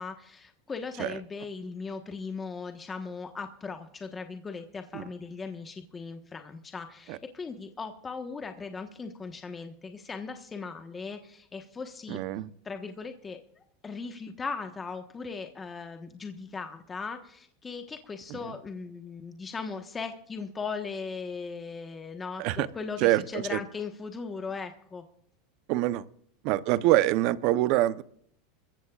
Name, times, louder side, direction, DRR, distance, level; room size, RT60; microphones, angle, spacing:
voice 1, 0.0-12.2 12.6-25.0, left 4 dB, 20° left, 6 dB, 1.2 m, -38 dB
voice 2, 12.1-12.5 18.3-18.5 22.4-22.7 23.0-23.6 25.7-26.0 26.4-28.0, right 15 dB, 55° right, 16 dB, 0.8 m, -25 dB
22.5 x 15.0 x 2.4 m, 0.65 s
supercardioid pair, 130°, 0 cm